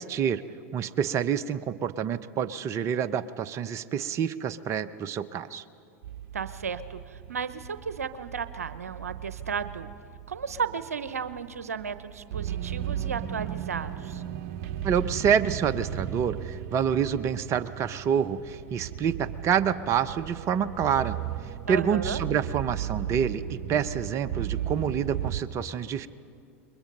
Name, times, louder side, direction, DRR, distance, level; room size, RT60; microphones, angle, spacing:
voice 1, 0.1-0.4 0.7-5.6 14.8-21.2 21.7-26.1, right 8 dB, 40° right, 12 dB, 0.8 m, -27 dB
sound 1, 6.0-25.4, right 10 dB, 60° right, 1.1 m, -36 dB
voice 2, 6.3-9.9 10.3-14.2 21.7-22.2, right 6 dB, 90° right, 12 dB, 0.8 m, -34 dB
28.5 x 22.0 x 5.4 m, 2.4 s
hypercardioid pair, 90°, 8 cm